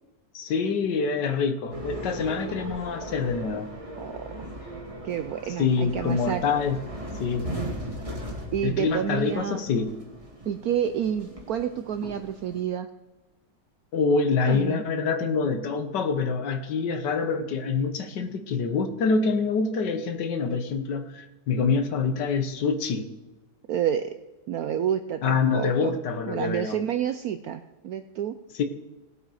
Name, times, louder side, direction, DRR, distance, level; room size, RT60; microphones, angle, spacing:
voice 1, 0.3-3.7 5.6-6.8 7.2-7.5 8.6-9.9 13.9-23.1 25.2-26.8 28.5-28.6, left 5 dB, 65° left, 8 dB, 1.6 m, -26 dB
sound 1, 1.7-12.6, right 1 dB, 20° right, 1.9 m, -38 dB
voice 2, 4.0-4.5 5.0-6.4 8.5-9.6 10.5-12.9 14.5-14.8 23.7-24.2 24.5-26.0 26.3-28.4, right 9 dB, 75° right, 9 dB, 0.8 m, -29 dB
18.5 x 8.0 x 4.9 m, 1.0 s
omnidirectional pair, 2.1 m